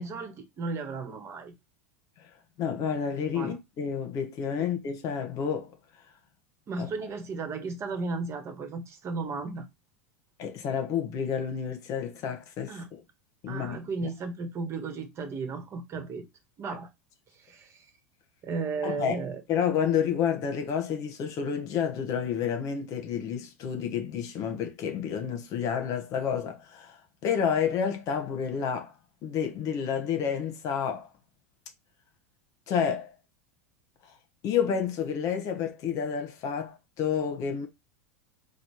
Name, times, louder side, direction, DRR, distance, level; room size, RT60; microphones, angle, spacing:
voice 1, 0.0-1.5 3.3-3.6 6.7-9.6 12.7-12.9 13.5-16.3 16.6-16.9 17.4-17.8 18.4-19.6, right 4 dB, 35° right, 1.4 m, -35 dB
voice 2, 2.6-5.7 6.8-6.9 10.4-12.7 13.4-13.9 18.8-19.2 19.5-26.9 27.2-28.9 29.2-31.1 32.7-33.1 34.4-37.7, left 7 dB, 45° left, 1.3 m, -29 dB
4.1 x 2.4 x 4.7 m
hypercardioid pair, 95°, 8 cm